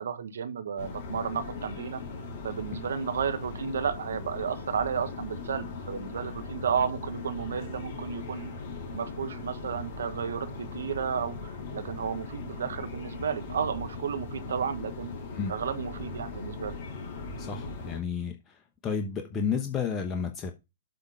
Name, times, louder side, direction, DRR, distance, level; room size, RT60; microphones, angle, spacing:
voice 1, 0.0-2.0 2.4-8.5 8.9-15.1 15.5-16.7, right 7 dB, 70° right, 1.1 m, -32 dB
sound 1, 0.8-18.0, left 3 dB, 50° left, 3.9 m, -39 dB
voice 2, 17.4-20.5, left 6 dB, 20° left, 1.0 m, -32 dB
7.8 x 3.7 x 5.5 m
figure-of-eight pair, 115°, 0 cm